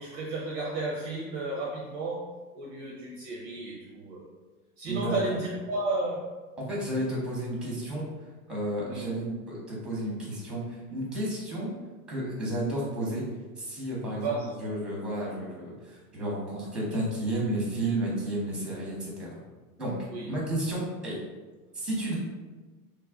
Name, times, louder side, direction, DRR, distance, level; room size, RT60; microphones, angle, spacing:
voice 1, 0.0-4.3 4.8-6.4 8.8-9.1 14.2-14.6 20.1-20.3, right 2 dB, 35° right, -2 dB, 0.5 m, -33 dB
voice 2, 4.9-5.2 6.6-8.1 8.5-11.7 12.1-13.2 13.6-19.3 19.8-20.0 20.3-21.2 21.7-22.2, right 1 dB, ahead, -4 dB, 0.7 m, -32 dB
3.2 x 2.4 x 3.5 m, 1.3 s
supercardioid pair, 140°, 46 cm